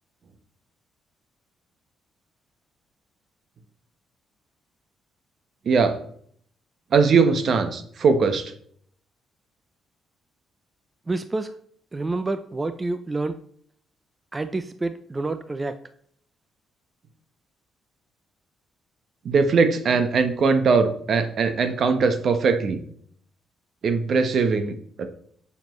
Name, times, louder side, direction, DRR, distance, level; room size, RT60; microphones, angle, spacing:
voice 1, 5.7-6.0 6.9-8.5 19.2-22.8 23.8-25.1, right 5 dB, 55° right, 8 dB, 1.1 m, -20 dB
voice 2, 11.1-11.5 11.9-13.4 14.3-15.8, right 2 dB, 20° right, 10 dB, 0.5 m, -28 dB
9.2 x 7.1 x 3.2 m, 0.63 s
cardioid pair, 90°, 0 cm